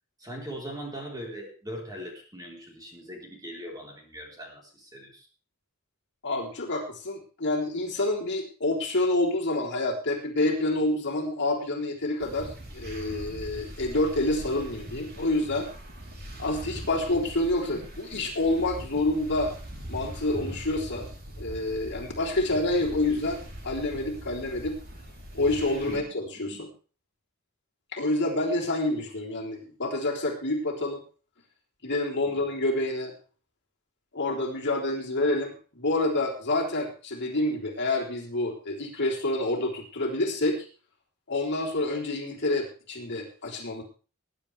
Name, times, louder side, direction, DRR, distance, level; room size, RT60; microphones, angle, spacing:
voice 1, 0.2-5.3 25.9-26.0 26.4-26.6 32.3-32.4, equal, 20° right, 0 dB, 4.1 m, -40 dB
voice 2, 6.2-15.7 16.4-19.6 19.9-21.1 21.4-24.8 25.3-26.7 27.9-31.0 31.8-33.1 34.1-40.7 41.3-43.8, left 2 dB, 55° left, -2 dB, 3.7 m, -28 dB
sound 1, 12.2-26.0, right 1 dB, 45° right, 3.7 m, -41 dB
20.5 x 10.5 x 3.4 m, 0.37 s
head